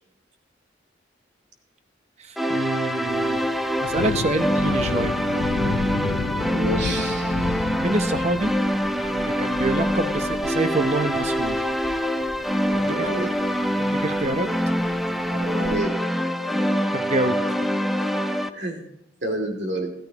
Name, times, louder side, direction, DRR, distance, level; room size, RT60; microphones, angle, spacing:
voice 1, 2.2-3.4 3.8-5.2 7.8-8.5 9.1-11.7 12.7-13.1 13.8-14.5 16.9-17.7, right 2 dB, 35° right, 9 dB, 0.8 m, -26 dB
sound 1, 2.4-18.5, equal, ahead, 0.5 m, -25 dB
Thunder, 3.1-15.8, left 5 dB, 70° left, 0.4 m, -34 dB
voice 2, 6.5-7.6 12.8-13.3 15.3-15.9 18.5-18.9 19.2-19.9, right 1 dB, 65° right, 2 dB, 2.6 m, -29 dB
14.0 x 14.0 x 3.0 m, 0.82 s
head